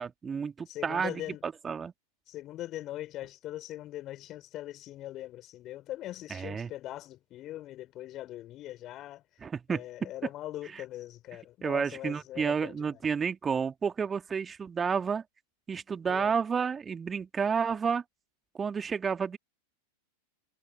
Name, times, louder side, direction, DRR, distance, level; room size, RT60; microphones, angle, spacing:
voice 1, 0.0-1.9 6.3-6.7 9.4-10.1 10.7-10.8 11.6-15.2 15.7-18.0 18.5-19.4, right 6 dB, 20° right, 2.3 m, -31 dB
voice 2, 0.7-1.4 2.3-9.2 9.7-13.0 16.1-16.3, left 14 dB, 35° left, 5.9 m, -41 dB
figure-of-eight pair, 90°, 0 cm